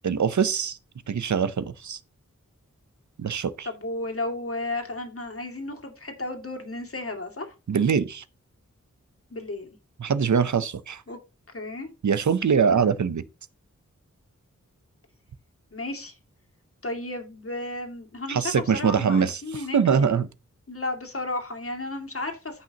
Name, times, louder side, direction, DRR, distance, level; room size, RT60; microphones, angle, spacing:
voice 1, 0.0-0.8 1.1-2.0 3.2-3.7 7.7-8.2 10.0-11.0 12.0-13.2 18.3-20.3, right 6 dB, 75° right, 0.7 m, -23 dB
voice 2, 3.6-7.5 9.3-9.8 11.1-11.2 11.5-11.9 12.7-13.0 15.7-16.2 16.8-20.2 20.7-22.6, left 2 dB, 50° left, 2.3 m, -33 dB
15.0 x 5.6 x 2.9 m
wide cardioid pair, 65°, 29 cm